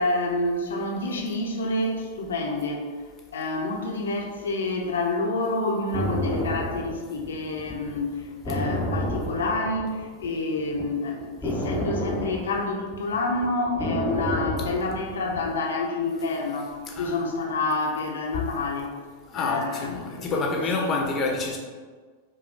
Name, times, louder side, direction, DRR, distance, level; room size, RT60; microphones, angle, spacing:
voice 1, 0.0-2.9 3.3-18.9 19.3-20.4 20.8-20.9, left 2 dB, 65° left, 0 dB, 0.7 m, -28 dB
sound 1, 5.9-10.3 10.6-15.5, equal, ahead, 0.8 m, -30 dB
voice 2, 16.9-17.2 18.3-18.4 19.3-21.6, left 3 dB, 30° left, 0 dB, 0.8 m, -28 dB
5.2 x 2.3 x 3.4 m, 1.5 s
figure-of-eight pair, 90°, 0 cm